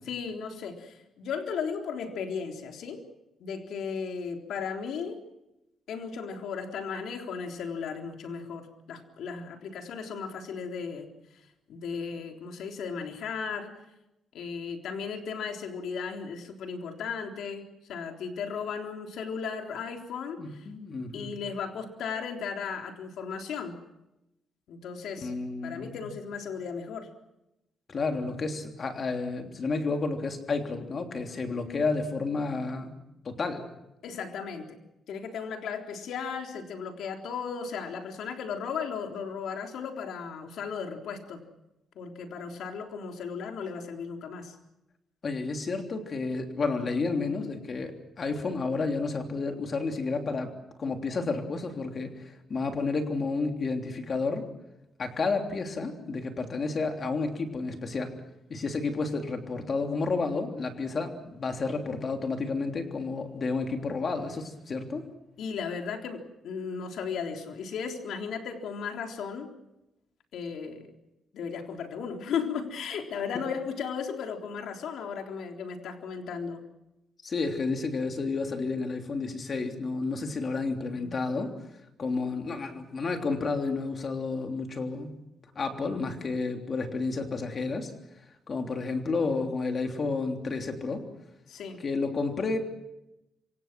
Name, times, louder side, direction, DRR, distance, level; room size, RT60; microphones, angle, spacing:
voice 1, 0.1-3.0 3.4-5.2 5.9-11.1 11.7-13.8 14.3-20.7 21.1-23.8 24.7-25.3 25.6-27.1 34.0-34.8 35.1-41.4 42.0-44.6 65.4-69.5 70.3-71.0 71.3-76.6 80.9-81.2 91.5-91.8, left 6 dB, 75° left, 3 dB, 3.7 m, -36 dB
voice 2, 20.4-21.3 25.2-26.1 27.9-32.9 33.2-33.7 45.2-50.5 50.8-54.5 55.0-58.1 58.5-65.0 77.2-81.5 82.0-85.1 85.5-87.9 88.5-91.0 91.8-92.6, left 3 dB, 35° left, 4 dB, 3.3 m, -31 dB
27.0 x 25.5 x 6.1 m, 0.89 s
wide cardioid pair, 170°, 0 cm